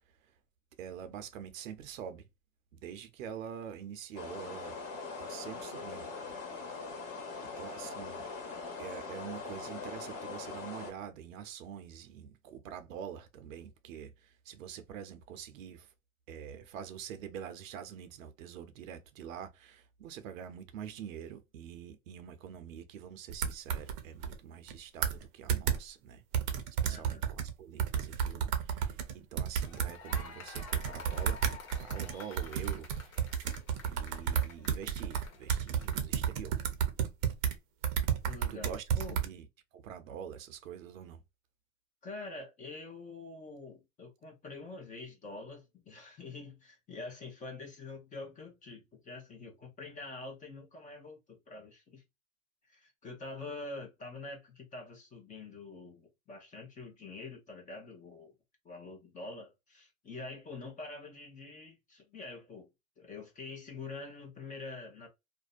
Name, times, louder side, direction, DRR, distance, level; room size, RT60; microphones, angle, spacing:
voice 1, 0.8-2.3 2.7-4.8 5.2-6.3 7.6-8.2 8.8-15.9 16.3-26.2 26.8-31.4 31.8-33.3 33.8-36.6 38.5-39.5 39.7-41.2, right 8 dB, 80° right, 0.7 m, -45 dB
sound 1, 4.1-10.9, left 4 dB, 35° left, 1.2 m, -42 dB
sound 2, 23.3-24.4 24.7-24.8 25.0-25.2 25.5-25.8 26.3-27.5 27.8-30.2 30.5-37.5 37.8-39.3, right 8 dB, 40° right, 0.6 m, -31 dB
voice 2, 26.8-27.2 38.2-39.2 42.0-52.0 52.6-58.3 58.6-62.7 63.0-65.1, left 3 dB, 20° left, 0.7 m, -46 dB
sound 3, 29.5-36.1, left 4 dB, 80° left, 1.0 m, -50 dB
2.5 x 2.2 x 2.4 m
hypercardioid pair, 125°, 39 cm